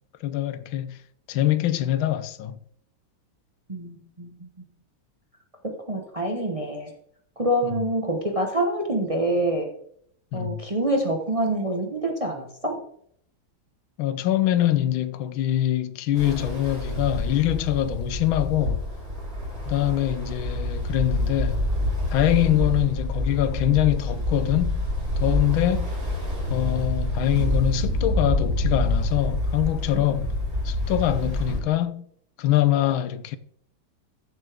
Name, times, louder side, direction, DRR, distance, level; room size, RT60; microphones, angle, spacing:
voice 1, 0.2-1.0 1.3-2.6 10.3-10.7 14.0-18.8 19.7-21.6 22.1-24.8 25.2-25.9 26.5-30.3 30.6-32.0 32.4-33.4, left 13 dB, 85° left, 1.4 m, -24 dB
voice 2, 3.7-4.6 5.6-6.9 7.4-9.7 10.3-12.8 29.9-30.0, right 1 dB, 25° right, 0.9 m, -26 dB
Ocean, 16.1-31.6, left 1 dB, 70° right, 5.0 m, -27 dB
14.0 x 7.3 x 3.5 m
omnidirectional pair, 2.2 m